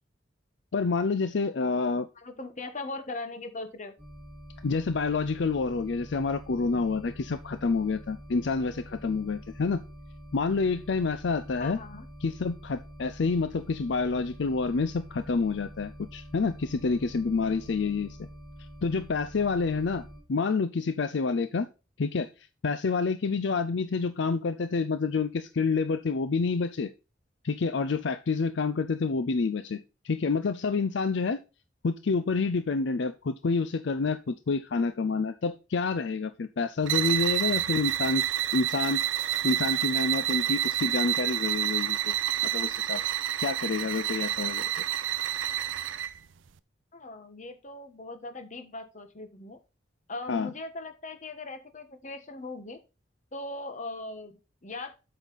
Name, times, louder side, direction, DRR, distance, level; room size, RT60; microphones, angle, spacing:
voice 1, 0.7-2.1 4.6-9.8 10.3-11.8 12.2-18.3 18.8-21.7 22.0-22.3 22.6-26.9 27.4-31.4 31.8-38.2 38.5-42.2 42.4-43.1 43.4-44.7 50.3-50.5, left 4 dB, 65° left, 0.5 m, -28 dB
voice 2, 2.2-3.9 11.6-12.1 46.9-49.6 50.1-52.8 53.3-54.9, left 2 dB, 40° left, 1.2 m, -39 dB
sound 1, 4.0-20.2, equal, 10° right, 3.5 m, -46 dB
sound 2, 36.8-46.2, right 12 dB, 85° right, 0.5 m, -29 dB
8.1 x 5.7 x 4.0 m
head